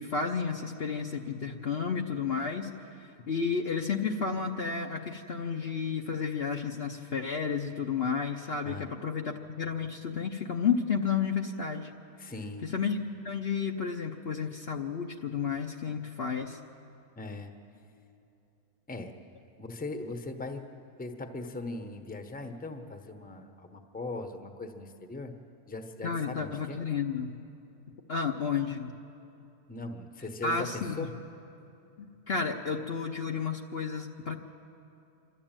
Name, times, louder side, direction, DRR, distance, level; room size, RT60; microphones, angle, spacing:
voice 1, 0.0-2.7 3.0-11.9 12.6-16.6 26.0-27.3 28.1-28.9 30.4-31.0 32.0-34.3, left 6 dB, 50° left, 3 dB, 0.9 m, -32 dB
voice 2, 12.2-12.7 17.2-17.5 18.9-19.1 19.6-20.7 21.0-25.4 25.7-26.8 29.7-31.1, left 2 dB, 5° left, 6 dB, 0.8 m, -39 dB
26.0 x 12.5 x 8.9 m, 2.8 s
omnidirectional pair, 1.6 m